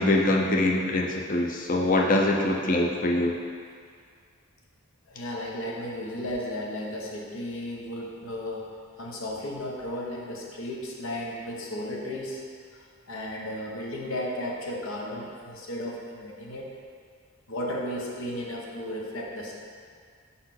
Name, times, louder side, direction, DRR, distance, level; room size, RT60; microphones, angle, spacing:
voice 1, 0.0-3.3, left 1 dB, 40° left, 0 dB, 0.6 m, -23 dB
voice 2, 5.1-12.4 12.7-16.7 17.5-19.5, left 1 dB, 75° left, -2 dB, 1.1 m, -34 dB
5.3 x 4.3 x 5.9 m, 2.2 s
head